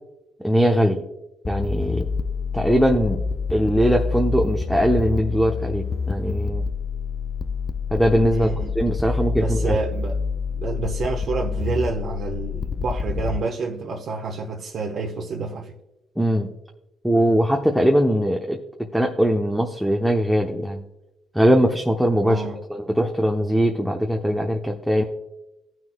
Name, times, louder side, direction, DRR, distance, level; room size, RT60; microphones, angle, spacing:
voice 1, 0.4-1.0 1.5-2.1 2.5-3.2 3.5-6.6 7.9-9.8 16.2-16.5 17.0-18.6 18.9-20.8 21.3-25.0, equal, ahead, 0.8 m, -21 dB
sound 1, 1.4-13.4, left 4 dB, 40° left, 0.3 m, -27 dB
voice 2, 8.3-8.7 9.4-10.2 10.5-15.7 22.2-22.6, right 4 dB, 60° right, 1.1 m, -28 dB
18.5 x 6.1 x 2.3 m
cardioid pair, 90°, 0 cm